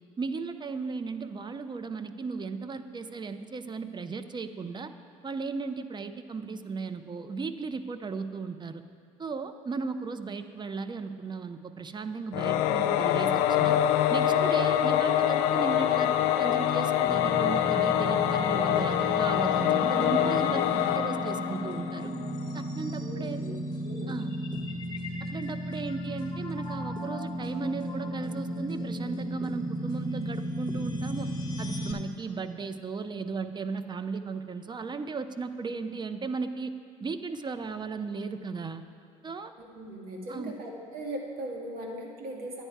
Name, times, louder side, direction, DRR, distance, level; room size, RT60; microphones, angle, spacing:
voice 1, 0.2-4.9 5.2-8.8 9.2-13.8 14.1-22.1 22.5-23.4 24.1-24.4 25.3-31.3 31.6-36.7 37.0-38.8 39.2-39.5 40.3-40.5, right 4 dB, 25° right, 10 dB, 0.6 m, -36 dB
Singing / Musical instrument, 12.3-22.4, left 11 dB, 80° left, 0.4 m, -25 dB
sound 1, 17.1-31.9, equal, 25° left, 1.2 m, -34 dB
voice 2, 23.0-23.6 23.8-24.1 39.6-42.6, right 1 dB, 60° right, 0 dB, 1.8 m, -39 dB
10.0 x 8.9 x 4.6 m, 2.3 s
supercardioid pair, 75°, 17 cm